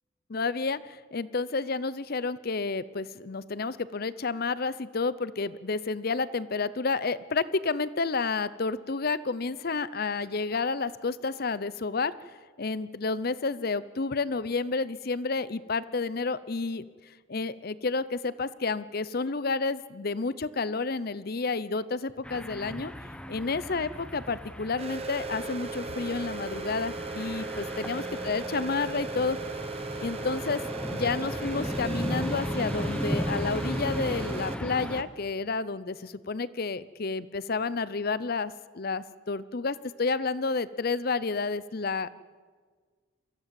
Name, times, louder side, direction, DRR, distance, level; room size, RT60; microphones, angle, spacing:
voice 1, 0.3-12.1 12.6-16.8 17.3-22.9 23.3-29.4 30.0-30.6 30.9-42.1, left 4 dB, 50° left, 17 dB, 0.7 m, -30 dB
sound 1, 22.2-35.0, equal, 5° left, 1.0 m, -36 dB
sound 2, 24.8-34.6, right 3 dB, 30° right, 0.8 m, -37 dB
24.0 x 15.5 x 7.7 m, 1.5 s
head